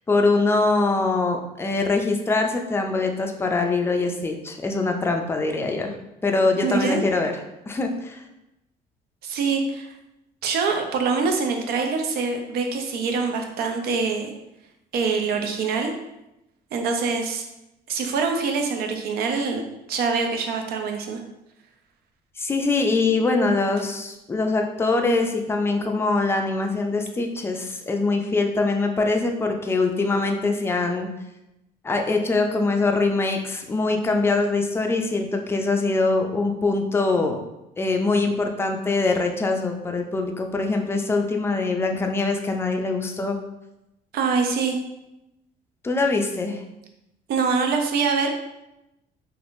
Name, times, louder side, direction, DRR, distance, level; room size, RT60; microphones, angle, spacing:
voice 1, 0.1-5.9 6.2-7.4 7.7-8.2 22.4-31.1 31.8-37.4 37.8-43.4 45.8-46.6, left 3 dB, 15° left, 3 dB, 0.4 m, -23 dB
voice 2, 6.6-7.1 9.2-9.9 10.4-14.3 14.9-15.9 16.7-17.4 17.9-19.6 19.9-21.2 44.1-44.8 47.3-48.4, right 4 dB, 65° right, 4 dB, 0.5 m, -24 dB
3.3 x 2.5 x 2.5 m, 0.91 s
cardioid pair, 110°, 17 cm